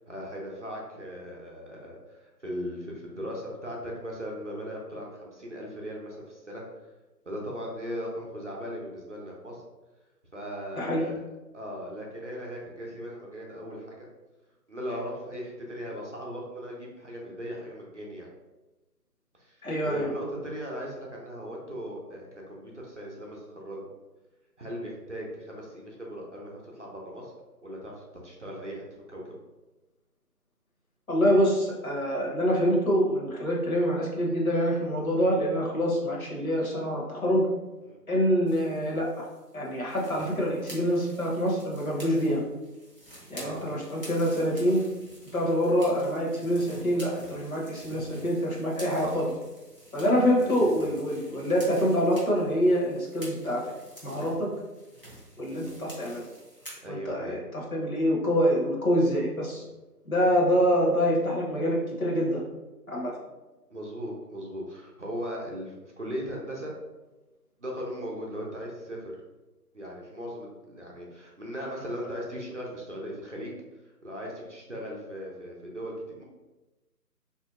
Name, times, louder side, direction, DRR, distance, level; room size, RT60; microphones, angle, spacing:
voice 1, 0.1-6.9 7.3-9.6 10.3-11.2 11.5-14.0 14.7-18.3 19.4-23.9 24.6-27.3 27.6-29.4 37.8-38.0 43.4-43.7 50.4-50.9 55.4-55.7 56.8-57.4 63.7-66.7 67.6-69.1 69.7-73.5 73.8-76.2, equal, 50° right, -2 dB, 0.6 m, -38 dB
voice 2, 19.6-20.1 31.1-37.5 38.1-39.3 39.5-42.4 43.3-44.8 45.3-49.3 49.9-53.6 54.0-54.5 55.4-56.2 56.9-59.6 60.1-62.4 62.9-63.1, equal, 55° left, -3 dB, 1.0 m, -25 dB
sound 1, 38.5-56.8, right 1 dB, 35° left, 0.7 m, -49 dB
3.1 x 2.6 x 2.4 m, 1.1 s
figure-of-eight pair, 160°, 49 cm